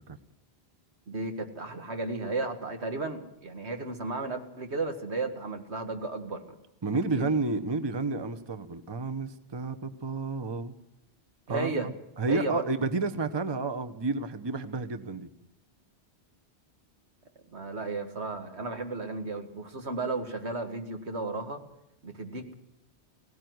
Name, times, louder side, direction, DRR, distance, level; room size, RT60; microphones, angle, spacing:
voice 1, 1.1-6.6 6.9-7.3 11.5-11.9 12.3-12.7 17.5-21.6 22.0-22.5, right 3 dB, 80° right, 5 dB, 2.1 m, -34 dB
voice 2, 6.8-10.7 11.5-11.9 12.2-15.3, right 3 dB, 25° right, 9 dB, 0.9 m, -31 dB
17.5 x 17.0 x 9.4 m, 0.85 s
omnidirectional pair, 1.1 m